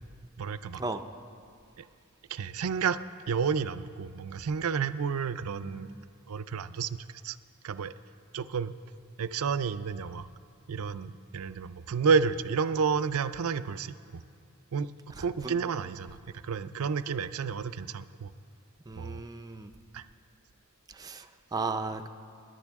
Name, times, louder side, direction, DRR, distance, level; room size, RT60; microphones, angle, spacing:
voice 1, 0.4-0.8 1.8-1.9 2.3-3.0 3.3-5.9 6.3-7.4 7.6-7.9 8.3-8.7 9.2-10.3 10.7-14.2 14.7-14.9 15.2-18.3 18.9-19.2 19.9-20.0, right 6 dB, 75° right, 13 dB, 0.5 m, -30 dB
voice 2, 18.9-19.7 21.0-21.2 21.5-22.1, right 3 dB, 15° right, 6 dB, 0.5 m, -34 dB
26.5 x 11.0 x 3.6 m, 2.4 s
head